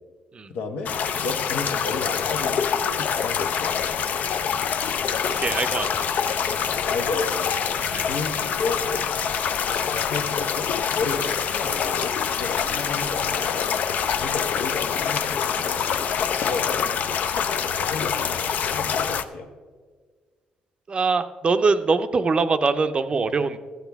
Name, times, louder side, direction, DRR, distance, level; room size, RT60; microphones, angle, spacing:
voice 1, 0.5-0.9 1.2-4.0 6.8-7.5 8.0-8.8 9.9-13.6 14.1-16.0 16.4-16.9 17.3-19.5, left 4 dB, 85° left, 4 dB, 1.1 m, -32 dB
sound 1, 0.9-19.2, left 7 dB, 65° left, 0.4 m, -25 dB
sound 2, 4.9-17.4, left 3 dB, 30° left, 1.2 m, -47 dB
voice 2, 5.4-6.1 7.8-8.2 20.9-23.6, right 4 dB, 35° right, 10 dB, 0.5 m, -23 dB
13.0 x 8.1 x 3.5 m, 1.5 s
cardioid pair, 90°, 3 cm